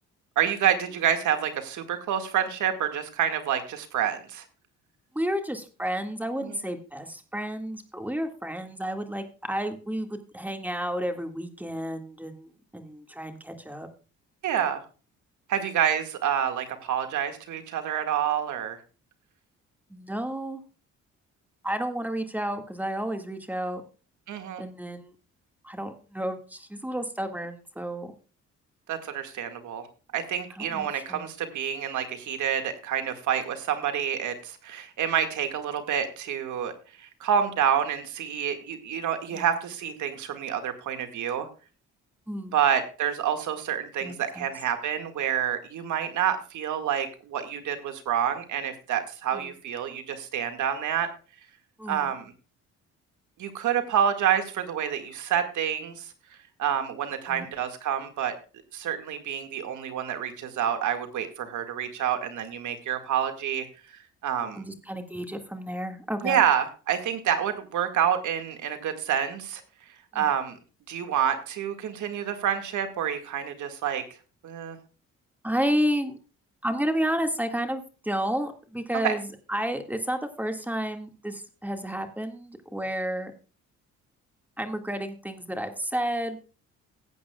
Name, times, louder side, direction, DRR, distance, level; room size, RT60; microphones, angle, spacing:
voice 1, 0.4-4.4 6.4-6.6 14.4-14.8 15.5-18.8 24.3-24.6 28.9-29.8 30.1-36.7 37.0-41.5 42.5-51.1 51.9-52.3 53.4-56.1 56.6-58.3 58.7-64.6 66.2-69.6 70.1-70.6 70.9-74.0 74.4-74.8 79.0-79.1, right 9 dB, 75° right, 7 dB, 2.0 m, -28 dB
voice 2, 5.1-13.9 19.9-20.6 21.6-23.8 24.6-25.1 25.6-28.1 30.6-31.3 39.3-39.5 42.3-42.5 44.0-44.5 49.3-49.5 51.8-52.1 57.3-57.5 64.6-66.4 70.1-70.3 75.4-76.2 76.6-83.3 84.6-86.4, equal, 5° right, 6 dB, 1.9 m, -31 dB
18.0 x 8.4 x 2.3 m, 0.35 s
cardioid pair, 90°, 30 cm